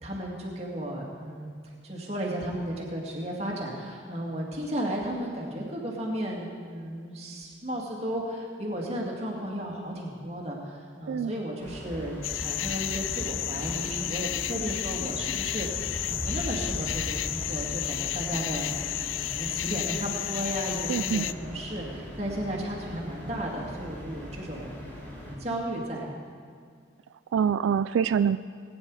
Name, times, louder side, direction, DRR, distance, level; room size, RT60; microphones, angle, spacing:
voice 1, 0.0-1.5 1.8-18.7 19.1-24.7 25.1-26.2, right 1 dB, 35° right, -2 dB, 2.3 m, -34 dB
sound 1, 11.6-25.4, equal, 10° left, 4.0 m, -39 dB
sound 2, 12.2-21.3, left 13 dB, 85° left, 0.4 m, -32 dB
voice 2, 20.9-21.3 27.3-28.4, right 7 dB, 90° right, 13 dB, 0.3 m, -25 dB
20.0 x 9.9 x 4.8 m, 2.1 s
head